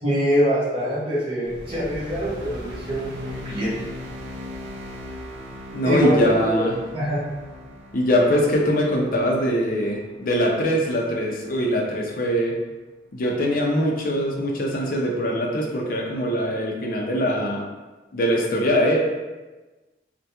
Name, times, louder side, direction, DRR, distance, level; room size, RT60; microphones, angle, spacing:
voice 1, 0.0-3.8 5.8-6.7 6.9-7.2, equal, 30° right, -9 dB, 1.0 m, -24 dB
sound 1, 1.4-11.9, left 1 dB, 85° right, 0.5 m, -39 dB
voice 2, 5.7-6.7 7.9-12.6 13.1-17.6 18.1-19.0, equal, 50° left, 0 dB, 0.5 m, -22 dB
3.3 x 2.2 x 2.8 m, 1.2 s
head